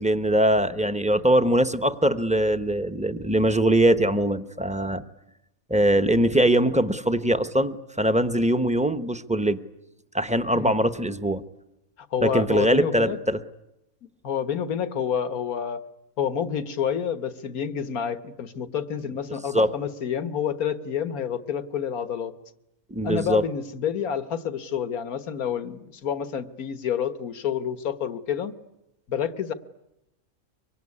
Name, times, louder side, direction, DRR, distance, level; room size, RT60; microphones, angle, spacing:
voice 1, 0.0-5.0 5.7-9.6 10.1-11.4 12.2-13.4 19.5-19.7 22.9-23.4, right 1 dB, 5° right, 10 dB, 0.8 m, -22 dB
voice 2, 12.1-13.2 14.2-15.8 16.2-22.3 23.0-28.5 29.1-29.5, left 8 dB, 80° left, 11 dB, 1.7 m, -28 dB
24.5 x 24.0 x 9.7 m, 0.90 s
omnidirectional pair, 1.5 m